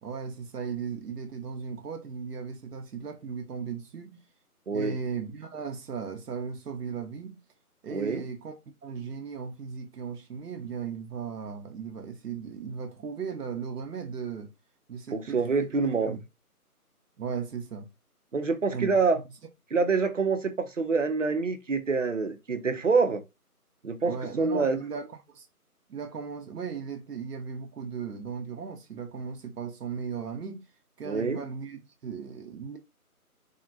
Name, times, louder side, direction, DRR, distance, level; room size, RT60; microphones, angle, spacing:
voice 1, 0.0-4.2 4.7-7.4 7.8-8.5 8.8-14.5 14.9-15.7 16.1-16.2 17.2-17.9 18.7-19.0 24.0-25.5 25.9-30.7 31.0-32.8, right 6 dB, 85° right, 0.8 m, -37 dB
voice 2, 7.9-8.2 15.1-16.2 18.3-19.2 19.7-23.2 23.8-24.8 31.0-31.4, right 4 dB, 55° right, 0.5 m, -26 dB
3.6 x 2.1 x 2.5 m
figure-of-eight pair, 175°, 46 cm